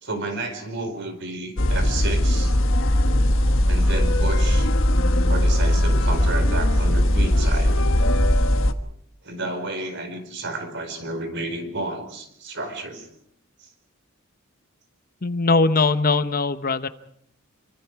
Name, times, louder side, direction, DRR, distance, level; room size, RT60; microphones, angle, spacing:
voice 1, 0.0-2.5 3.7-4.7 5.2-7.7 9.2-13.1, right 2 dB, 55° right, 7 dB, 4.7 m, -31 dB
sound 1, 1.6-8.7, left 1 dB, 65° left, 1.4 m, -19 dB
voice 2, 15.2-16.9, left 3 dB, 45° left, 12 dB, 1.0 m, -20 dB
28.5 x 24.0 x 4.7 m, 0.71 s
head